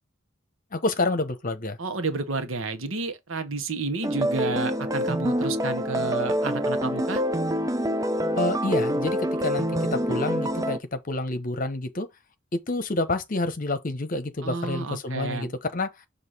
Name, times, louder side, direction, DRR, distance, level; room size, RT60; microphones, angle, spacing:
voice 1, 0.7-1.8 8.4-12.1 12.5-15.9, left 2 dB, 45° left, 1.0 m, -28 dB
voice 2, 1.8-7.2 14.4-15.5, right 3 dB, 80° right, 1.1 m, -31 dB
sound 1, 4.0-10.8, equal, 15° right, 0.5 m, -26 dB
6.4 x 2.8 x 5.5 m
head